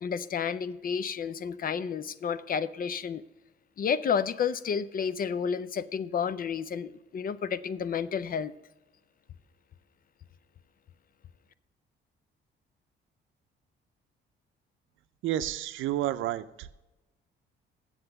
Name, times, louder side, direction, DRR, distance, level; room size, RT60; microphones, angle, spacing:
voice 1, 0.0-3.2 3.8-8.5, left 7 dB, 45° left, 15 dB, 0.6 m, -31 dB
voice 2, 15.2-16.7, right 13 dB, 85° right, 12 dB, 0.5 m, -30 dB
7.8 x 7.2 x 6.7 m, 1.0 s
cardioid pair, 90°, 20 cm